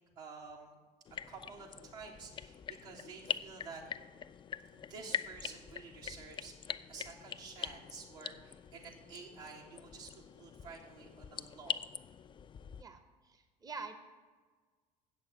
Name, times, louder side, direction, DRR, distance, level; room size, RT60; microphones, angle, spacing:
voice 1, 0.2-0.8 1.3-3.8 4.7-11.8, right 4 dB, 70° right, -2 dB, 1.8 m, -50 dB
sound 1, 1.1-12.8, left 8 dB, 25° left, 0.3 m, -44 dB
voice 2, 12.8-14.0, right 4 dB, 20° right, 9 dB, 0.8 m, -47 dB
7.8 x 6.4 x 8.1 m, 1.5 s
figure-of-eight pair, 60°, 21 cm